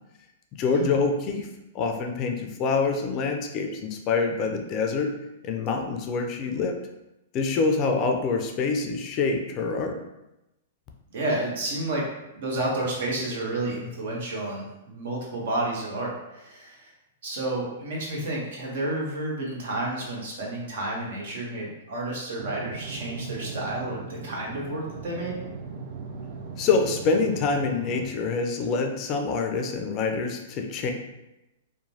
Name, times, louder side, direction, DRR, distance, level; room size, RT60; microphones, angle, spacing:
voice 1, 0.6-1.5 1.7-5.1 5.4-6.7 7.3-10.0 26.6-30.9, left 4 dB, 35° left, 3 dB, 0.4 m, -26 dB
voice 2, 11.1-12.0 12.4-16.9 17.2-25.4, right 2 dB, 65° right, -3 dB, 0.9 m, -31 dB
sound 1, 22.4-28.1, right 4 dB, 50° right, 0.3 m, -38 dB
2.9 x 2.1 x 2.7 m, 0.93 s
hypercardioid pair, 130°, 0 cm